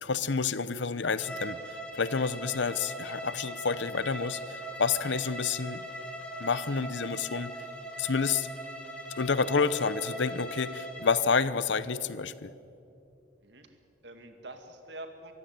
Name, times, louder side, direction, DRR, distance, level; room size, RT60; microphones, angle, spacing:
voice 1, 0.0-1.6 1.9-5.8 6.4-7.5 8.0-8.5 9.2-12.5, left 5 dB, 70° left, 16 dB, 0.8 m, -29 dB
Bowed string instrument, 1.1-11.2, equal, 5° left, 2.4 m, -40 dB
voice 2, 13.4-15.3, right 1 dB, 65° right, 6 dB, 2.3 m, -46 dB
23.5 x 15.5 x 9.5 m, 2.7 s
head